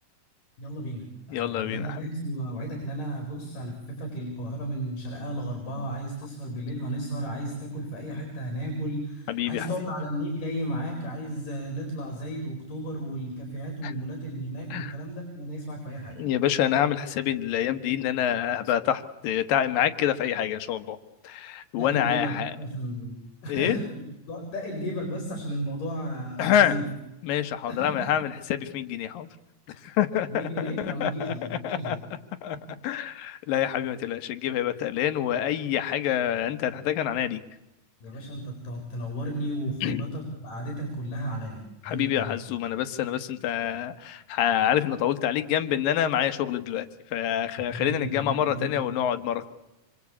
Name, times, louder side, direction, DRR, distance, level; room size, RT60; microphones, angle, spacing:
voice 1, 0.6-16.2 21.8-23.1 23.4-26.9 27.7-28.1 29.7-29.8 30.3-32.0 38.0-42.4 47.6-48.9, equal, 70° left, 3 dB, 6.0 m, -34 dB
voice 2, 1.3-2.1 9.3-9.9 13.8-13.9 14.7-14.9 16.2-21.0 21.2-22.5 23.5-23.8 26.4-26.8 27.2-29.3 29.8-32.0 32.4-32.6 32.8-37.4 39.8-40.0 41.8-46.9 47.1-49.5, left 10 dB, 90° left, 11 dB, 3.0 m, -27 dB
27.0 x 24.5 x 8.5 m, 0.95 s
omnidirectional pair, 3.9 m